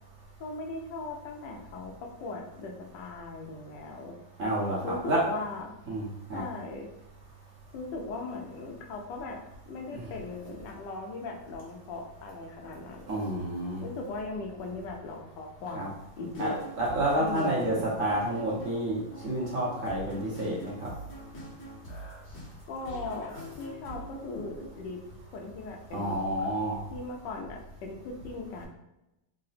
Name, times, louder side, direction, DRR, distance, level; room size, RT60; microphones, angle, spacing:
voice 1, 0.4-4.2 4.8-5.7 6.3-6.9 7.7-13.3 13.8-16.7 17.2-17.8 22.7-25.0 25.3-26.5 26.9-28.7, left 3 dB, 80° left, 1 dB, 1.3 m, -39 dB
voice 2, 4.4-5.2 5.9-6.4 9.9-10.1 13.1-13.8 15.7-15.9 16.4-20.9 25.9-26.8, right 1 dB, 55° right, -5 dB, 1.0 m, -29 dB
sound 1, 16.2-24.7, right 1 dB, 55° left, 1.6 m, -45 dB
3.8 x 2.1 x 4.0 m, 0.92 s
omnidirectional pair, 2.0 m